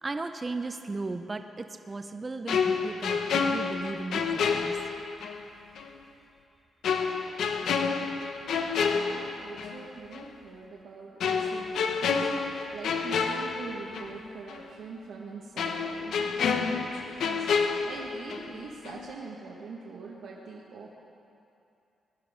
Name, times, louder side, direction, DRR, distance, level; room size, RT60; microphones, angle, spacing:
voice 1, 0.0-4.8, right 3 dB, 25° right, 7 dB, 0.5 m, -36 dB
sound 1, 2.5-5.4 5.8-5.9 6.8-9.8 10.1-10.3 11.2-14.2 14.5-14.6 15.6-18.6 18.9-19.1, left 5 dB, 80° left, 0.9 m, -29 dB
voice 2, 8.9-20.9, right 4 dB, 85° right, -4 dB, 1.6 m, -44 dB
20.0 x 11.5 x 5.1 m, 2.7 s
wide cardioid pair, 140°, 0 cm